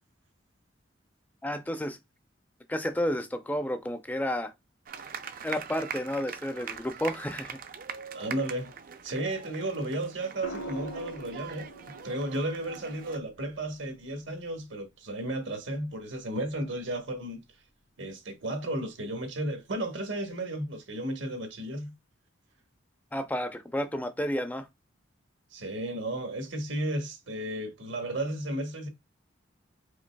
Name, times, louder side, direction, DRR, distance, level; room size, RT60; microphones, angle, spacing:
voice 1, 1.4-2.0 2.7-4.5 5.4-7.6 23.1-24.7, equal, 10° left, 0.5 m, -31 dB
sound 1, 4.8-13.2, right 7 dB, 45° right, 0.5 m, -42 dB
voice 2, 8.1-8.7 9.0-11.7 12.0-17.4 18.0-21.9 25.5-28.9, right 1 dB, 70° right, 1.2 m, -33 dB
sound 2, 10.4-14.6 16.3-16.6, right 1 dB, 80° left, 1.1 m, -44 dB
5.1 x 3.7 x 2.3 m
head